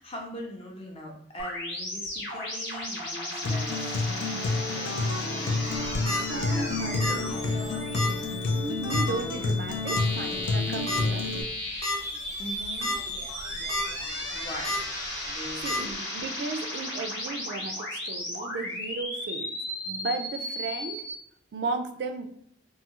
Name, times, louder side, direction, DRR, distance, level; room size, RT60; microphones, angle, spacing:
voice 1, 0.0-3.8 4.4-8.0 12.4-13.0 14.3-14.8 15.3-16.0, left 1 dB, 30° left, 0 dB, 0.5 m, -41 dB
sound 1, 1.4-21.1, left 1 dB, 65° left, 1.0 m, -35 dB
Acoustic guitar, 3.4-11.4, left 3 dB, 85° left, 0.4 m, -29 dB
sound 2, 5.8-6.2 7.0-7.3 7.5-7.6 7.9-8.1 8.9-9.2 9.9-10.0 10.9-11.0 11.5-11.6 11.8-11.9 12.6-12.9 13.4-13.8 14.6-14.8 15.6-15.8, left 1 dB, 15° left, 1.0 m, -29 dB
voice 2, 6.2-7.1 8.5-11.3 15.6-19.5 19.9-21.0 21.5-22.2, right 3 dB, 60° right, 7 dB, 0.3 m, -35 dB
2.7 x 2.3 x 2.9 m, 0.66 s
head